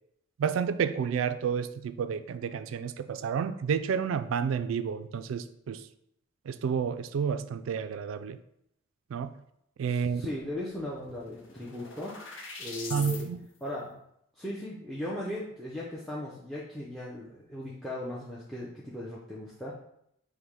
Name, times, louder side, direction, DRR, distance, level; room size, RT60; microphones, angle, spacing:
voice 1, 0.4-5.8 6.5-8.4 9.1-9.3 9.8-10.3 12.9-13.5, right 7 dB, 75° right, 11 dB, 0.3 m, -30 dB
voice 2, 9.9-12.2 12.6-13.3 13.6-14.0 14.4-19.7, left 1 dB, ahead, -5 dB, 0.5 m, -38 dB
sound 1, 10.7-13.2, left 4 dB, 70° left, 0.8 m, -43 dB
5.4 x 2.1 x 4.6 m, 0.75 s
head